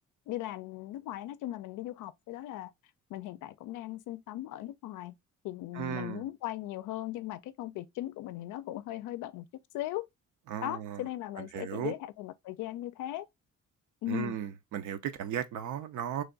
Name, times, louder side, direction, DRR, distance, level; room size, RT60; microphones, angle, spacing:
voice 1, 0.3-2.7 3.1-5.1 5.4-9.4 9.7-10.1 10.6-13.3 14.0-14.4, left 15 dB, 85° left, 0.5 m, -38 dB
voice 2, 5.7-6.2 10.5-11.0 11.4-11.9 14.1-16.2, right 9 dB, 75° right, 0.6 m, -36 dB
3.2 x 2.3 x 3.8 m
cardioid pair, 90°, 30 cm